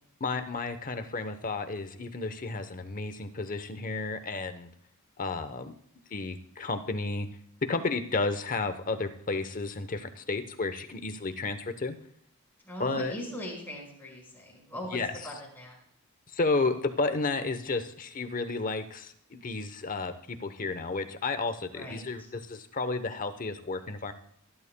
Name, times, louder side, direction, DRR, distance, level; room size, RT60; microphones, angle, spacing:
voice 1, 0.2-4.7 5.2-5.7 6.1-7.3 7.7-11.9 12.8-13.1 14.9-15.1 16.3-24.1, left 3 dB, 40° left, 9 dB, 0.9 m, -32 dB
voice 2, 12.6-15.0 15.2-15.7 21.7-22.3, left 1 dB, 10° left, -4 dB, 5.5 m, -40 dB
19.0 x 11.5 x 2.2 m, 0.69 s
head